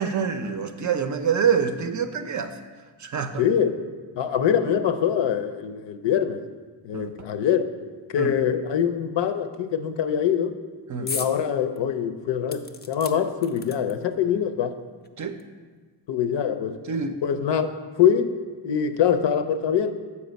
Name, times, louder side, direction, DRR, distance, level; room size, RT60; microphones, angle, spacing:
voice 1, 0.0-2.5 3.0-3.4 6.9-7.1 8.2-8.3 10.9-11.1 15.2-15.4 16.9-17.2, right 6 dB, 45° right, 8 dB, 0.5 m, -26 dB
voice 2, 3.4-3.8 4.2-6.4 6.8-7.7 8.1-10.6 11.0-14.8 16.1-16.8 17.2-18.3 18.6-19.9, left 8 dB, 75° left, 9 dB, 0.6 m, -24 dB
sound 1, 11.1-11.4 11.8-11.9 12.5-14.1 15.0-15.1 15.4-15.5, left 5 dB, 25° left, 0.3 m, -35 dB
7.1 x 4.9 x 5.1 m, 1.4 s
wide cardioid pair, 120°, 44 cm